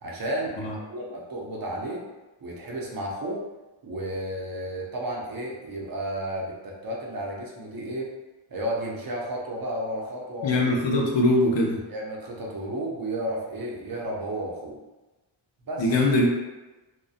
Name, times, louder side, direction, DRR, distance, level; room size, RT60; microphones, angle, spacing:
voice 1, 0.0-2.0 2.4-3.4 3.8-8.1 8.5-10.6 10.9-11.0 11.9-14.8 15.6-15.9, right 1 dB, 50° right, -3 dB, 0.6 m, -32 dB
voice 2, 10.4-11.8 15.8-16.3, left 1 dB, 70° left, -1 dB, 0.6 m, -22 dB
2.5 x 2.1 x 2.4 m, 1.1 s
wide cardioid pair, 105°, 47 cm